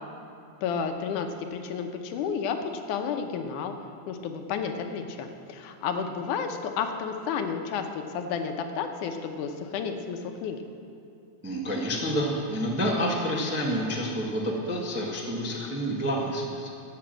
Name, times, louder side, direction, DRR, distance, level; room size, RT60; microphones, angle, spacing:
voice 1, 0.6-3.7 4.1-10.6, left 6 dB, 85° left, 5 dB, 2.4 m, -31 dB
voice 2, 11.4-16.7, equal, 15° right, -2 dB, 0.4 m, -28 dB
13.0 x 8.6 x 7.6 m, 2.6 s
omnidirectional pair, 3.5 m